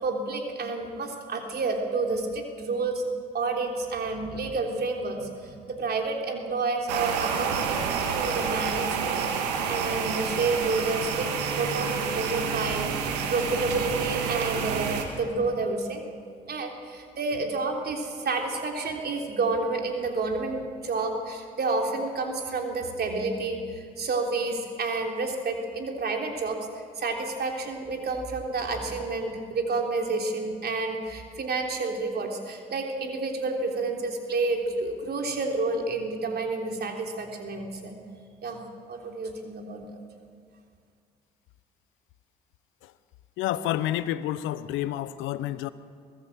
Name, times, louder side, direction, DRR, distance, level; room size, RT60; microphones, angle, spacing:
voice 1, 0.0-3.0 3.3-11.3 11.6-16.0 16.5-37.9 38.4-38.6 38.9-40.0, right 3 dB, 55° right, 2 dB, 3.5 m, -30 dB
sound 1, 6.9-15.1, right 6 dB, 90° right, 1.8 m, -29 dB
voice 2, 43.4-45.7, left 13 dB, 75° left, 15 dB, 0.9 m, -29 dB
23.5 x 15.0 x 7.5 m, 2.2 s
hypercardioid pair, 50°, 20 cm